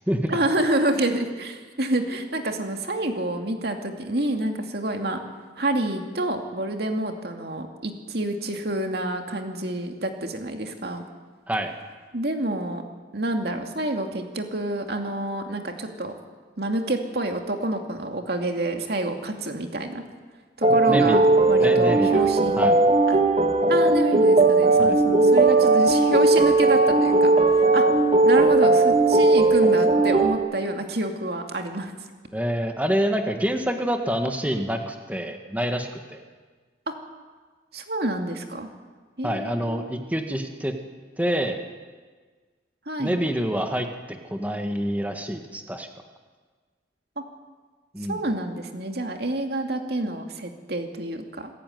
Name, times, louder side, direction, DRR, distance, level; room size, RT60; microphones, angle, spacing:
voice 1, 0.3-5.2 5.6-11.0 12.1-12.8 13.1-16.1 16.6-20.0 20.6-22.7 23.7-27.9 28.2-31.9 36.9-37.0 37.7-38.7 39.2-39.9 42.9-43.2 47.2-47.3 48.1-51.5, right 1 dB, 60° right, 4 dB, 2.5 m, -28 dB
sound 1, 20.6-30.4, right 2 dB, 35° right, 2.0 m, -18 dB
voice 2, 20.9-21.2 21.6-22.3 22.6-22.7 24.8-25.0 32.3-36.2 39.2-40.7 41.2-41.6 43.0-45.9 47.9-48.2, equal, 10° right, 4 dB, 1.8 m, -27 dB
27.0 x 15.0 x 9.4 m, 1.4 s
head